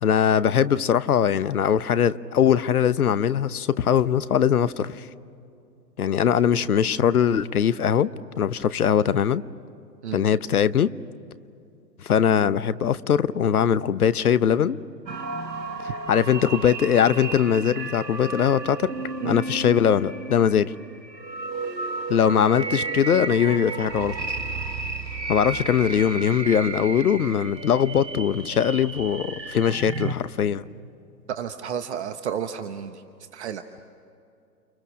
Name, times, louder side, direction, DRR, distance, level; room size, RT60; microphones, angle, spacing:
voice 1, 0.0-5.1 6.0-8.1 8.4-9.4 10.1-10.9 12.0-14.8 16.1-18.9 19.2-20.7 22.1-24.1 25.3-30.6, left 8 dB, 60° left, 1.0 m, -21 dB
sound 1, 15.1-30.1, right 3 dB, 85° right, 1.7 m, -33 dB
voice 2, 31.3-33.0 33.3-33.6, right 8 dB, 40° right, 1.2 m, -31 dB
29.5 x 29.5 x 6.4 m
figure-of-eight pair, 130°, 49 cm